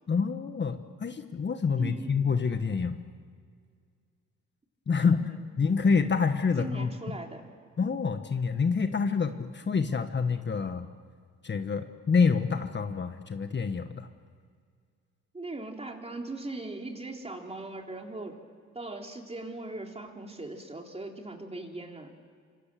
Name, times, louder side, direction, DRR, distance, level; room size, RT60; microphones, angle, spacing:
voice 1, 0.1-3.0 4.9-5.2 5.6-6.9 7.8-10.9 11.4-14.1, left 5 dB, 35° left, 8 dB, 1.4 m, -27 dB
voice 2, 1.7-2.1 5.0-5.5 6.6-7.5 9.8-9.9 15.3-18.4 18.7-22.1, right 2 dB, 20° right, 2 dB, 3.8 m, -39 dB
26.5 x 26.0 x 7.7 m, 2.1 s
cardioid pair, 90°, 30 cm